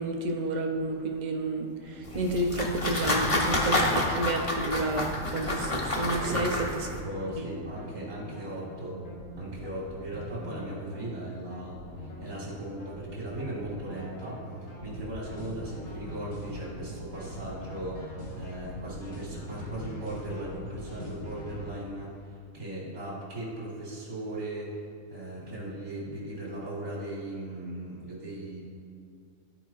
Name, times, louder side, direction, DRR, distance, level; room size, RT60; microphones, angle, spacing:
voice 1, 0.0-6.6 7.4-7.5, right 2 dB, 50° right, 2 dB, 0.5 m, -30 dB
sound 1, 1.8-21.6, equal, 85° left, 1.8 m, -43 dB
sound 2, 2.1-7.0, left 1 dB, 30° left, 0.7 m, -29 dB
voice 2, 7.0-9.0 9.4-18.1 18.4-24.8 25.1-28.6, right 1 dB, 75° right, -8 dB, 2.1 m, -38 dB
12.0 x 4.5 x 2.4 m, 2.2 s
omnidirectional pair, 1.5 m